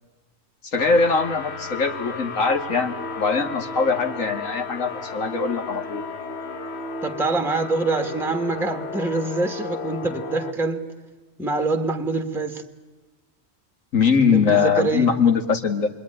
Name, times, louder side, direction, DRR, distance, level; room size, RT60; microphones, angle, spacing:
voice 1, 0.6-6.0 13.9-15.9, left 5 dB, 75° left, 6 dB, 2.3 m, -21 dB
sound 1, 0.8-10.5, left 4 dB, 55° left, 1.3 m, -34 dB
voice 2, 7.0-10.8 11.4-12.6 14.3-15.2, right 3 dB, ahead, 7 dB, 1.4 m, -25 dB
28.0 x 21.5 x 9.9 m, 1.2 s
omnidirectional pair, 1.4 m